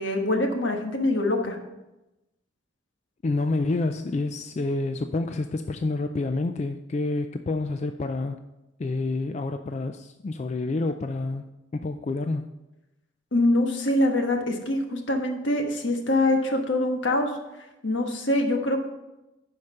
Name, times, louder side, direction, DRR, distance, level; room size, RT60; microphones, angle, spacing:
voice 1, 0.0-1.6 13.3-17.3 17.8-18.9, left 1 dB, 75° left, 3 dB, 1.4 m, -24 dB
voice 2, 3.2-8.4 8.8-11.5 11.7-12.5, left 2 dB, 35° left, 8 dB, 0.3 m, -28 dB
10.5 x 5.0 x 5.6 m, 0.99 s
head